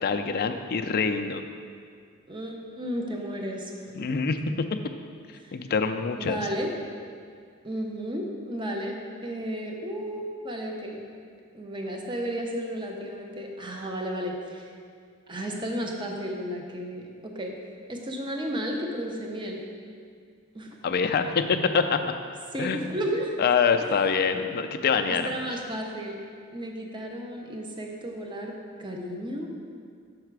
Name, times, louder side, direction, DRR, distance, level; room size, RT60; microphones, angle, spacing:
voice 1, 0.0-1.4 4.0-4.4 5.5-6.4 20.8-22.0 22.6-22.9 23.4-25.3, left 5 dB, 45° left, 7 dB, 0.4 m, -25 dB
voice 2, 2.3-3.9 5.4-5.5 6.2-6.7 7.6-9.0 9.2-11.0 11.5-14.7 15.3-17.5 17.9-19.6 20.5-20.8 22.5-23.3 23.8-23.9 25.1-26.2 26.5-29.5, equal, 25° right, 1 dB, 0.6 m, -33 dB
6.5 x 4.9 x 4.7 m, 2.1 s
head